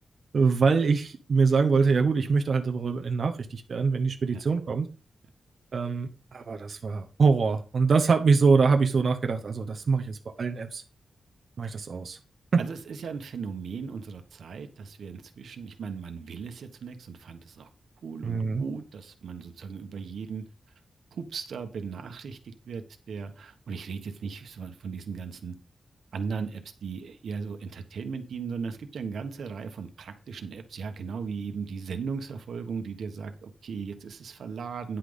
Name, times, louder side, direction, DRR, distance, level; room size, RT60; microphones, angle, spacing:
voice 1, 0.3-4.9 5.7-10.8 11.6-12.2 12.5-12.6 18.2-18.6, right 4 dB, 50° right, 1.0 m, -24 dB
voice 2, 12.6-17.7 18.0-20.4 21.1-25.5 26.1-35.0, right 5 dB, 85° right, 1.3 m, -37 dB
10.0 x 5.9 x 5.2 m
wide cardioid pair, 145°, 0 cm